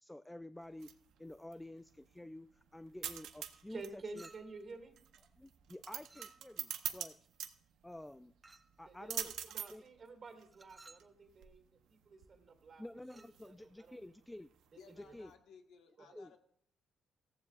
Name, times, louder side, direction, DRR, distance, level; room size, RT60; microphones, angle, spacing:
voice 1, 0.0-0.9 1.2-4.3 5.4-7.2 7.8-8.3 8.8-9.3 9.7-9.8 12.8-14.5 14.9-15.3 16.2-16.3, left 1 dB, 10° left, 12 dB, 0.3 m, -50 dB
sound 1, 0.6-15.3, right 10 dB, 80° right, 0.8 m, -47 dB
voice 2, 3.7-5.0 8.9-11.6 11.9-12.8 13.1-14.1 14.7-15.2 16.0-16.1, right 3 dB, 45° right, 6 dB, 2.2 m, -51 dB
Chink clink, 4.2-4.7 6.1-6.7 8.4-8.8 10.5-11.1 13.0-13.4, right 3 dB, 25° right, 0.7 m, -59 dB
voice 3, 14.8-16.4, left 6 dB, 85° left, 5 dB, 1.4 m, -59 dB
15.5 x 14.5 x 2.4 m, 0.67 s
cardioid pair, 90°, 0 cm